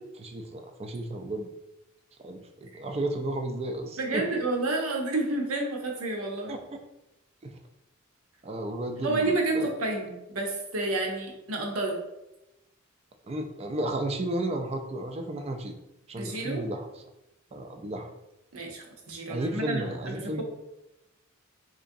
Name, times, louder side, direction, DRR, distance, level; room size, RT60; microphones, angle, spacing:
voice 1, 0.2-1.5 2.2-4.4 6.5-6.6 7.4-7.6 8.4-9.7 13.2-15.7 16.1-16.9 17.5-18.1 19.3-20.4, right 1 dB, 30° right, 5 dB, 0.3 m, -33 dB
voice 2, 4.0-6.5 9.0-12.0 16.2-16.6 18.5-20.4, right 2 dB, 80° right, 1 dB, 0.8 m, -30 dB
3.9 x 3.3 x 2.6 m, 0.92 s
head